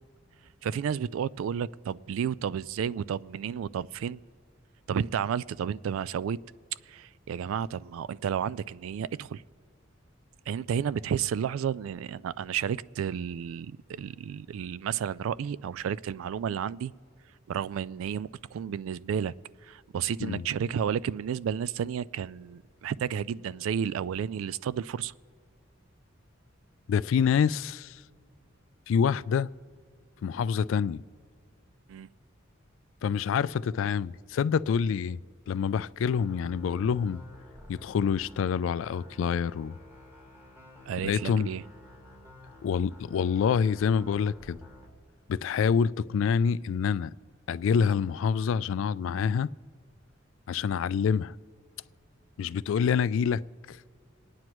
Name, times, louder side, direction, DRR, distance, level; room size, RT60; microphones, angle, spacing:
voice 1, 0.6-4.2 4.9-6.4 6.9-9.4 10.5-16.9 17.5-19.3 19.6-25.1 31.9-32.1 40.9-41.6, right 8 dB, 80° right, 0.3 m, -32 dB
voice 2, 26.9-28.0 28.9-29.5 30.2-31.0 33.0-35.2 35.5-37.2 37.7-39.8 41.0-41.5 42.6-44.6 45.3-47.1 47.5-49.5 50.5-51.3 52.4-53.4 53.7-53.8, left 6 dB, 65° left, 0.3 m, -26 dB
sound 1, 36.0-44.9, left 1 dB, 10° right, 1.4 m, -51 dB
28.0 x 9.6 x 3.0 m
head